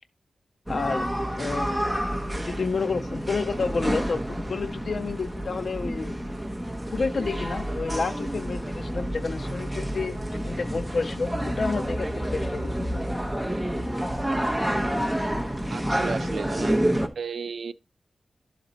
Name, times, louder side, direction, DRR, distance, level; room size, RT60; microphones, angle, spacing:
voice 1, 0.7-1.1 1.4-1.9 2.2-6.2 6.9-12.9, left 4 dB, 50° left, 0.3 m, -30 dB
sound 1, 0.7-17.1, equal, 5° right, 0.8 m, -29 dB
voice 2, 15.7-16.8 17.1-17.7, right 5 dB, 70° right, 0.4 m, -34 dB
11.5 x 4.2 x 3.9 m
wide cardioid pair, 160°, 0 cm